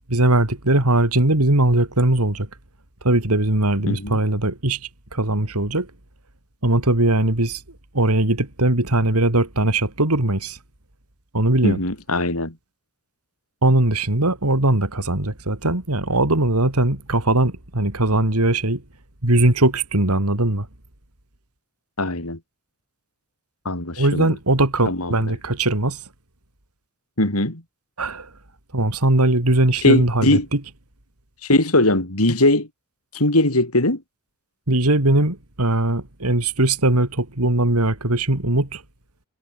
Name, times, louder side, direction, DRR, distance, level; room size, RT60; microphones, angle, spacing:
voice 1, 0.1-2.5 3.0-4.8 5.1-5.9 6.6-7.6 7.9-10.6 11.3-11.8 13.6-18.8 19.2-20.7 24.0-26.0 28.0-28.3 28.7-30.6 34.7-38.8, right 1 dB, 85° right, 3.6 m, -20 dB
voice 2, 3.9-4.2 11.6-12.6 22.0-22.4 23.6-24.4 24.9-25.3 27.2-27.6 29.8-30.5 31.4-32.7 33.1-34.0, left 2 dB, 75° left, 4.9 m, -20 dB
head